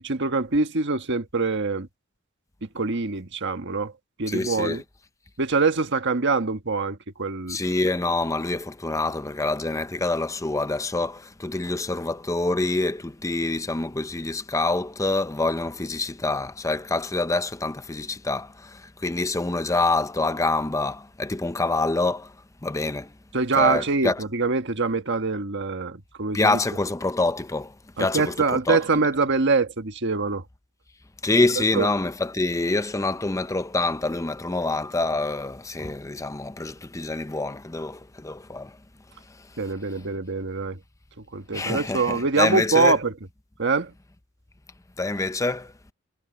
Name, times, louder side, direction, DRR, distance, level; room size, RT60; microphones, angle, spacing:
voice 1, 0.0-1.9 2.6-3.9 4.2-4.8 5.4-7.6 23.3-26.6 28.0-30.4 31.7-31.9 39.6-40.8 41.3-43.1 43.6-43.9, right 4 dB, 55° right, 1.4 m, -24 dB
voice 2, 4.3-4.8 7.5-22.4 22.6-23.1 23.5-24.2 26.3-28.8 31.2-38.8 41.5-43.0 45.0-45.7, left 2 dB, 15° left, 0.6 m, -26 dB
head